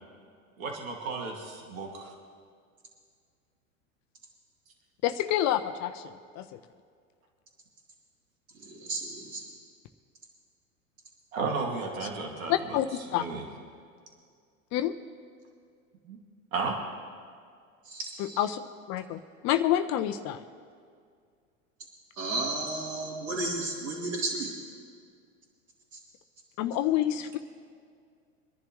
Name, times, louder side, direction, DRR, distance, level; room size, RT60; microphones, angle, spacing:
voice 1, 0.6-2.1 11.3-12.5 13.1-13.4 16.1-16.2 16.5-16.8, right 4 dB, 80° right, 0 dB, 2.3 m, -33 dB
voice 2, 5.0-6.6 12.5-12.9 13.1-13.2 14.7-14.9 18.2-18.6 18.9-20.4 26.6-27.4, left 12 dB, 45° left, 9 dB, 0.8 m, -28 dB
voice 3, 8.5-9.4 17.8-18.0 18.3-18.5 22.1-24.6 25.9-26.0, right 2 dB, 50° right, -7 dB, 3.6 m, -33 dB
25.0 x 11.0 x 3.2 m, 2.2 s
hypercardioid pair, 100°, 40 cm